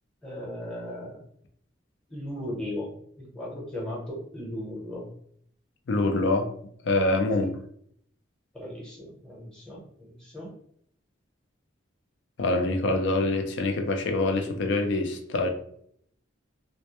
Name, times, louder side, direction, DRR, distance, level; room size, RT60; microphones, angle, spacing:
voice 1, 0.2-1.2 2.1-5.0 7.4-7.5 8.5-10.5, left 1 dB, 5° left, -5 dB, 0.8 m, -37 dB
voice 2, 5.9-6.5 6.8-7.5 12.4-15.5, left 2 dB, 65° left, 5 dB, 0.4 m, -25 dB
2.1 x 2.1 x 2.8 m, 0.66 s
head